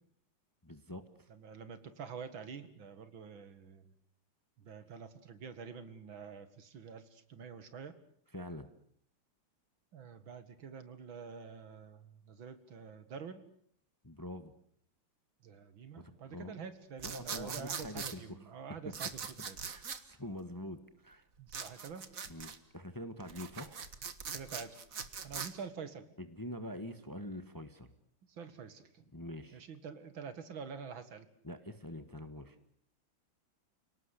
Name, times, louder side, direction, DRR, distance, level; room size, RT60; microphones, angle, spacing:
voice 1, 0.6-1.3 8.3-8.7 14.0-14.5 16.0-16.6 17.0-18.5 18.8-18.9 19.6-21.2 22.3-23.8 26.2-27.9 29.1-29.6 31.4-32.6, left 1 dB, 10° left, 10 dB, 1.3 m, -45 dB
voice 2, 1.3-3.9 4.6-7.9 9.9-13.4 15.4-19.6 21.4-22.0 24.3-24.8 25.2-26.1 28.3-29.0 29.5-31.3, right 6 dB, 75° right, 11 dB, 2.6 m, -47 dB
sound 1, 17.0-18.2 18.9-20.0 21.5-22.6 23.2-25.5, right 6 dB, 45° right, 1.8 m, -41 dB
29.0 x 18.5 x 8.3 m, 0.64 s
omnidirectional pair, 2.2 m